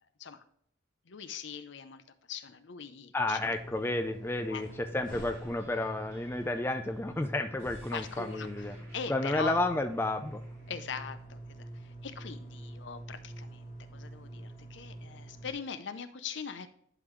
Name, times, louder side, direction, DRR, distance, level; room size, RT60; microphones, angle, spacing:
voice 1, 1.1-2.0 2.3-3.6 4.5-4.6 7.9-9.6 10.7-16.7, left 6 dB, 60° left, 11 dB, 0.6 m, -41 dB
voice 2, 3.1-8.8 9.1-10.4, left 2 dB, 10° left, 7 dB, 0.3 m, -31 dB
sound 1, 3.3-15.5, right 1 dB, 45° left, 1.2 m, -45 dB
sound 2, 4.6-10.8, equal, 50° right, 2.7 m, -57 dB
11.0 x 3.9 x 3.1 m, 0.66 s
head